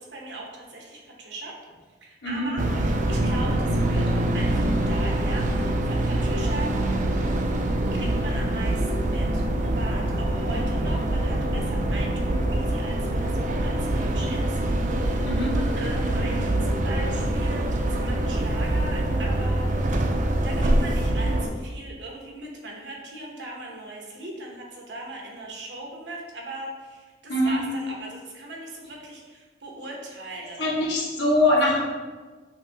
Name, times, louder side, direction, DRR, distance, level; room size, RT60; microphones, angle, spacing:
voice 1, 0.0-1.5 2.0-2.7 3.1-6.7 7.9-14.9 15.2-20.0 20.4-30.7 31.6-31.8, right 2 dB, 90° right, -1 dB, 1.0 m, -39 dB
sound 1, 2.6-21.5, right 1 dB, 45° right, 0.4 m, -24 dB
voice 2, 15.2-15.5 27.3-27.6 30.6-31.8, left 1 dB, 80° left, -5 dB, 1.3 m, -22 dB
5.7 x 2.7 x 3.4 m, 1.4 s
head